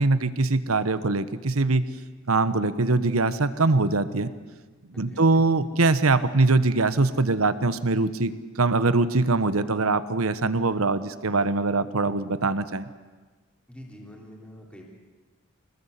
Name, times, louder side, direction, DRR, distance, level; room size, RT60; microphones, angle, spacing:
voice 1, 0.0-1.8 2.3-4.3 4.9-12.9, right 3 dB, 90° right, 13 dB, 1.2 m, -23 dB
voice 2, 4.9-5.4 13.7-14.9, equal, 5° left, -1 dB, 3.2 m, -45 dB
25.0 x 19.5 x 8.3 m, 1.4 s
head